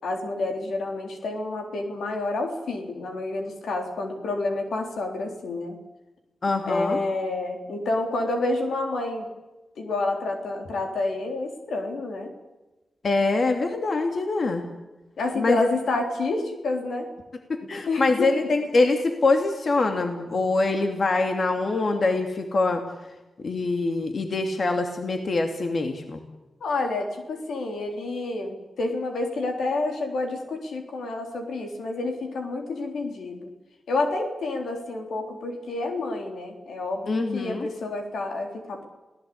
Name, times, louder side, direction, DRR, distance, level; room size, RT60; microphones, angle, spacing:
voice 1, 0.0-5.8 6.6-9.3 9.8-12.3 15.2-17.1 17.9-18.5 26.6-33.5 33.9-38.9, left 2 dB, 90° left, 3 dB, 3.7 m, -29 dB
voice 2, 6.4-7.0 13.0-14.6 15.4-15.7 17.7-22.8 23.4-26.2 37.1-37.7, left 3 dB, 60° left, 5 dB, 2.5 m, -24 dB
28.5 x 17.5 x 8.6 m, 1.1 s
cardioid pair, 60°, 0 cm